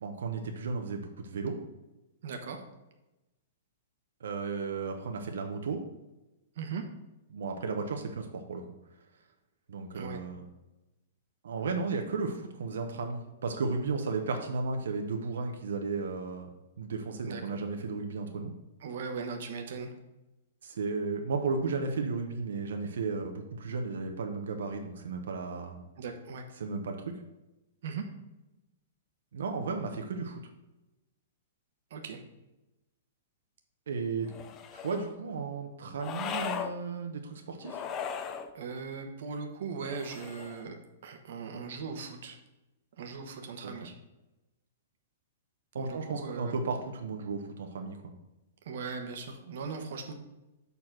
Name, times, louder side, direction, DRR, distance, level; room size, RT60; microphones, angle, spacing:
voice 1, 0.0-1.6 4.2-5.8 7.3-8.6 9.7-10.4 11.4-16.5 16.8-18.5 20.6-25.8 26.6-27.1 29.3-30.4 33.9-34.3 34.7-37.8 43.6-43.9 45.7-48.1, right 4 dB, 80° right, 4 dB, 1.0 m, -34 dB
voice 2, 2.2-2.6 6.5-6.8 9.9-10.2 17.2-17.5 18.8-19.9 26.0-26.5 27.8-28.0 31.9-32.2 38.5-42.4 43.0-43.9 45.7-46.6 48.6-50.1, right 5 dB, 55° right, 4 dB, 1.1 m, -39 dB
sound 1, 34.3-35.1 36.0-36.7 37.6-38.5 39.8-40.7, left 7 dB, 20° left, 0.4 m, -38 dB
6.9 x 4.1 x 6.1 m, 0.99 s
hypercardioid pair, 170°, 0 cm